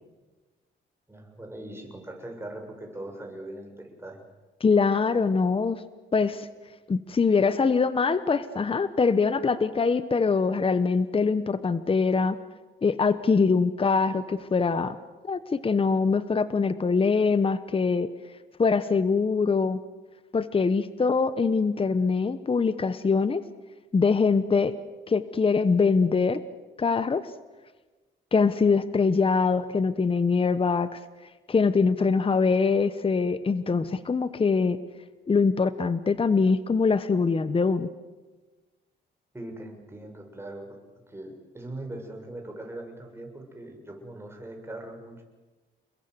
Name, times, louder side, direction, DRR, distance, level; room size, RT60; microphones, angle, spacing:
voice 1, 1.1-4.2 39.3-40.7 41.1-45.2, right 1 dB, 10° right, 2 dB, 6.7 m, -40 dB
voice 2, 4.6-5.8 6.1-6.5 6.9-12.4 12.8-15.0 15.2-18.1 18.6-19.8 20.3-23.4 23.9-24.7 25.1-26.4 26.8-27.3 28.3-31.0 31.5-34.8 35.3-37.9, left 4 dB, 25° left, 13 dB, 1.1 m, -23 dB
29.5 x 21.5 x 8.1 m, 1.2 s
cardioid pair, 90°, 20 cm